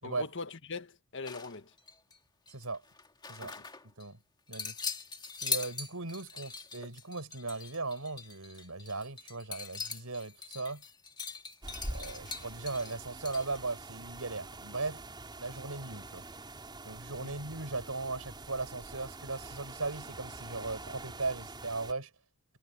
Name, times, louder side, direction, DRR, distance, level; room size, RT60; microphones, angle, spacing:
voice 1, 0.0-1.7 3.4-3.7 17.2-17.4, left 4 dB, 55° left, 1.6 m, -42 dB
sound 1, 1.3-2.2 2.5-4.1 4.5-13.6, left 5 dB, 20° left, 2.0 m, -41 dB
voice 2, 2.5-2.8 3.3-3.5 4.0-4.2 4.5-4.7 5.4-10.8 11.9-15.0 15.4-16.2 16.8-22.1, right 3 dB, 75° right, 4.9 m, -38 dB
sound 2, 11.6-21.9, right 2 dB, 20° right, 6.2 m, -45 dB
head